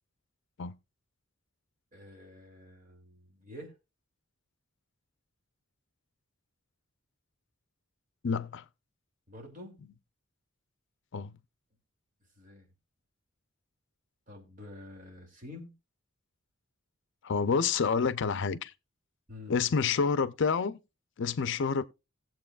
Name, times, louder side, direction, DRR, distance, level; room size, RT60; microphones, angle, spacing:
voice 1, 1.9-3.7 9.3-9.8 12.4-12.7 14.3-15.7 19.3-19.6, left 1 dB, 40° right, 2.8 m, -48 dB
voice 2, 8.2-8.6 11.1-11.3 17.2-18.7 19.5-20.8 21.2-21.8, left 5 dB, 60° left, 0.5 m, -28 dB
18.5 x 7.6 x 2.4 m
head